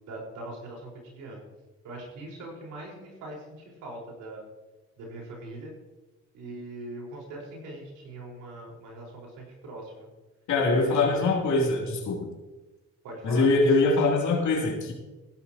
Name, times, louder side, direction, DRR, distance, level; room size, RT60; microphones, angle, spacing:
voice 1, 0.1-1.4 1.8-4.4 5.0-5.7 6.3-10.1 10.8-11.3 13.0-13.5, right 1 dB, 90° right, -2 dB, 5.1 m, -41 dB
voice 2, 10.5-12.3 13.2-14.9, left 3 dB, 70° left, -2 dB, 3.3 m, -23 dB
15.5 x 12.0 x 3.0 m, 1.1 s
cardioid pair, 90°, 30 cm